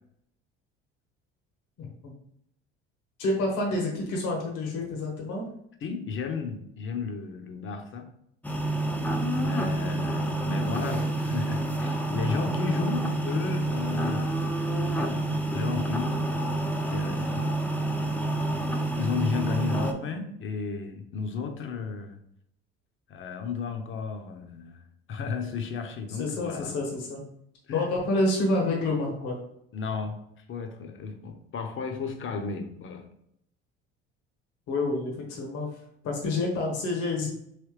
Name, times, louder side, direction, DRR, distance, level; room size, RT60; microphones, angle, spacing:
voice 1, 3.2-5.4 19.7-19.9 26.2-27.2 27.7-29.3 34.7-35.7 36.0-37.3, left 2 dB, 65° left, 0 dB, 1.2 m, -28 dB
voice 2, 5.8-8.1 9.4-14.5 14.8-16.3 16.9-17.5 18.9-22.2 23.1-26.8 27.7-28.0 29.7-33.1, left 5 dB, 40° left, 5 dB, 0.7 m, -34 dB
sound 1, 8.4-19.9, right 2 dB, 5° left, 0.5 m, -28 dB
3.3 x 3.0 x 3.1 m, 0.72 s
hypercardioid pair, 65°, 32 cm